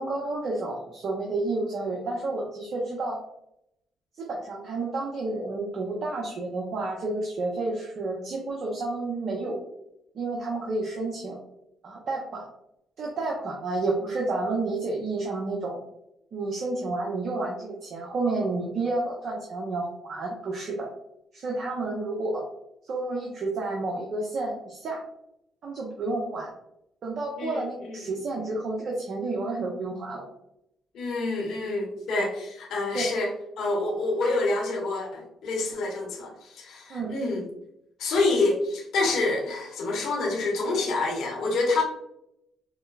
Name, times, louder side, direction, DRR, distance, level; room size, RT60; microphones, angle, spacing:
voice 1, 0.0-3.2 4.2-9.6 10.1-11.4 11.8-12.4 13.0-15.8 16.3-20.9 21.3-22.4 22.9-25.0 25.6-26.5 27.0-30.2 32.9-33.1 36.9-37.1, right 2 dB, 60° right, -2 dB, 0.8 m, -30 dB
voice 2, 27.4-28.0 30.9-37.4 38.0-41.8, left 2 dB, 75° left, -1 dB, 1.0 m, -27 dB
5.0 x 2.1 x 2.4 m, 0.80 s
supercardioid pair, 60°, 0 cm